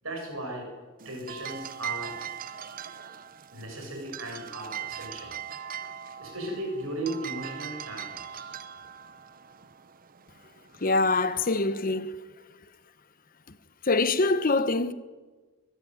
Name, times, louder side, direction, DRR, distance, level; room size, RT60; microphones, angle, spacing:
voice 1, 0.0-0.7 1.0-2.2 3.5-5.4 5.7-5.9 6.2-8.6, right 1 dB, 70° right, 7.3 m, -36 dB
sound 1, 1.0-11.4, right 9 dB, 40° right, 0.9 m, -41 dB
voice 2, 10.8-12.2 13.8-14.9, left 3 dB, 40° left, 1.0 m, -24 dB
22.5 x 14.5 x 9.5 m
head